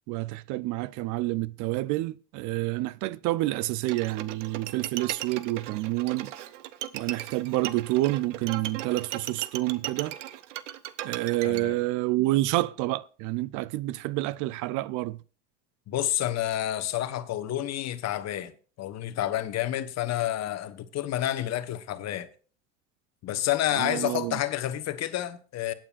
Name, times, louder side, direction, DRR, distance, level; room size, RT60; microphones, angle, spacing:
voice 1, 0.1-6.3 6.9-10.2 11.0-15.2 23.7-24.4, right 18 dB, 55° right, 0.5 m, -28 dB
Bowed string instrument, 3.9-11.6, right 13 dB, 85° right, 0.8 m, -37 dB
voice 2, 11.4-11.8 15.9-18.5 18.8-22.3 23.2-25.7, left 13 dB, 45° left, 1.2 m, -29 dB
20.5 x 9.0 x 2.5 m
hypercardioid pair, 80°, 36 cm